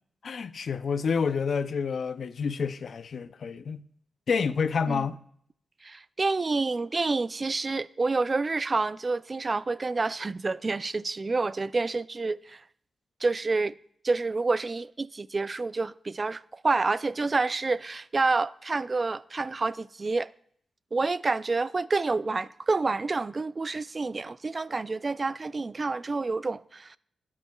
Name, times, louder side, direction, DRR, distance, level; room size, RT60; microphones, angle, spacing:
voice 1, 0.2-3.8 4.3-5.2, left 5 dB, 65° left, 0.5 m, -28 dB
voice 2, 5.8-12.6 13.2-13.7 14.0-20.3 20.9-27.0, right 3 dB, 35° right, 0.3 m, -28 dB
17.5 x 11.0 x 2.3 m
cardioid pair, 95°, 0 cm